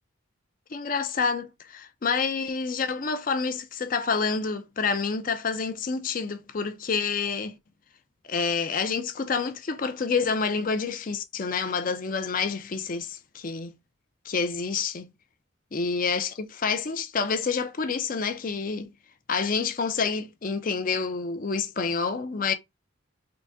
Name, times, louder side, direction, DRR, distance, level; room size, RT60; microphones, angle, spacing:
voice 1, 0.7-7.6 8.2-13.7 14.2-15.1 15.7-18.9 19.3-22.5, left 5 dB, 40° left, 0.5 m, -28 dB
3.9 x 2.2 x 3.5 m
head